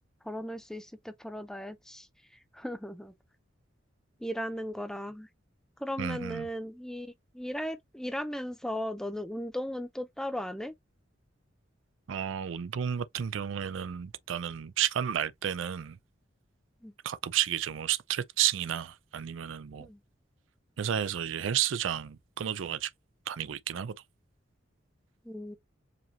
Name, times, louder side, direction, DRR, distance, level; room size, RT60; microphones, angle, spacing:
voice 1, 0.2-2.1 2.5-3.1 4.2-5.3 5.8-10.7 16.8-16.9 19.8-20.0 25.2-25.6, equal, 5° left, 0.5 m, -37 dB
voice 2, 6.0-6.5 12.1-16.0 17.0-19.9 20.8-22.9 23.3-24.0, right 10 dB, 85° right, 0.4 m, -32 dB
5.0 x 2.8 x 2.7 m
head